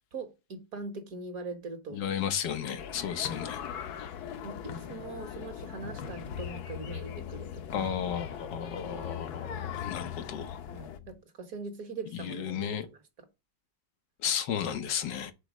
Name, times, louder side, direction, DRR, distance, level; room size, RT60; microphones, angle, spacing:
voice 1, 0.1-2.2 3.3-3.5 4.4-7.9 9.4-10.1 10.7-13.3, right 3 dB, 55° right, 1.6 m, -42 dB
voice 2, 1.9-3.6 7.7-10.6 12.1-12.9 14.2-15.3, left 8 dB, 90° left, 1.6 m, -33 dB
sound 1, 2.8-11.0, left 8 dB, 70° left, 1.2 m, -40 dB
sound 2, 5.8-11.2, left 9 dB, 45° left, 0.5 m, -43 dB
5.2 x 4.4 x 6.0 m
omnidirectional pair, 1.8 m